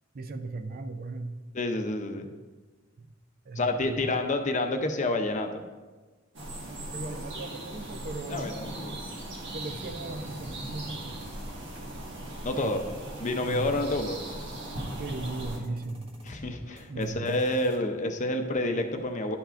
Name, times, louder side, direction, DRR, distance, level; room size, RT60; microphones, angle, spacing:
voice 1, 0.1-1.3 3.0-3.1 3.5-4.2 6.9-8.8 9.5-11.1 11.9-12.0 12.6-12.7 13.5-13.7 15.0-16.1 16.9-17.5, right 3 dB, 50° right, 8 dB, 0.5 m, -37 dB
voice 2, 1.5-2.3 3.6-5.6 8.3-9.0 12.4-12.8 13.2-14.2 16.3-19.4, left 2 dB, 40° left, 5 dB, 0.6 m, -29 dB
sound 1, 6.3-15.6, right 1 dB, 65° right, 1.5 m, -39 dB
sound 2, 9.9-17.8, equal, 30° right, 1.4 m, -51 dB
11.0 x 5.6 x 2.5 m, 1.3 s
head